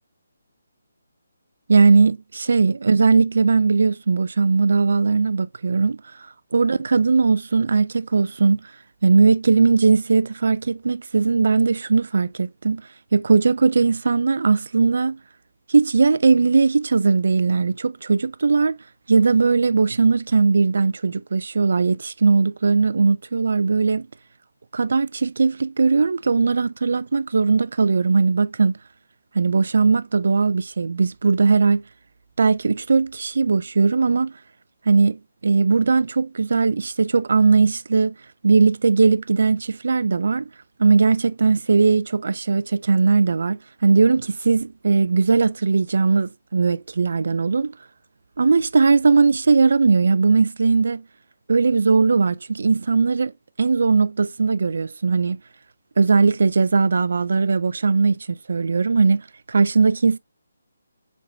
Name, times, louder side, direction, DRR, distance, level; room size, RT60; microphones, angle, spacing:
voice 1, 1.7-6.0 6.5-8.6 9.0-12.8 13.1-15.2 15.7-18.8 19.1-24.1 24.7-28.7 29.3-31.8 32.4-34.3 34.9-38.1 38.4-40.5 40.8-47.7 48.4-51.0 51.5-53.3 53.6-55.4 56.0-59.2 59.5-60.2, right 4 dB, 70° right, 0.3 m, -19 dB
5.1 x 4.4 x 2.2 m
hypercardioid pair, 165°, 0 cm